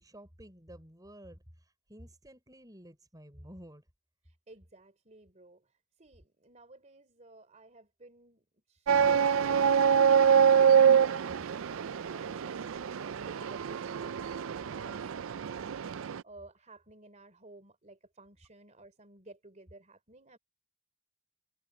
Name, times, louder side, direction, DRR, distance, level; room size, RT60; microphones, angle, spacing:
voice 1, 0.0-3.9, equal, 15° right, 6.1 m, -51 dB
voice 2, 4.3-20.4, right 2 dB, 35° right, 3.6 m, -55 dB
sound 1, 8.9-16.2, right 7 dB, 60° right, 0.4 m, -25 dB
head